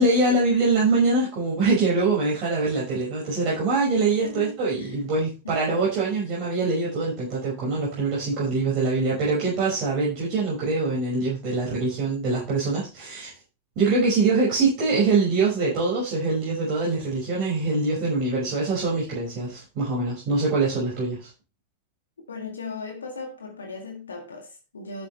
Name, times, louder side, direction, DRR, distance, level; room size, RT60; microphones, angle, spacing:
voice 1, 0.0-13.3 13.8-21.3, right 3 dB, 45° right, 5.5 m, -24 dB
voice 2, 4.2-4.9 5.4-5.8 22.3-25.1, left 4 dB, 70° left, 2.0 m, -37 dB
12.5 x 7.5 x 3.2 m
figure-of-eight pair, 90°, 0 cm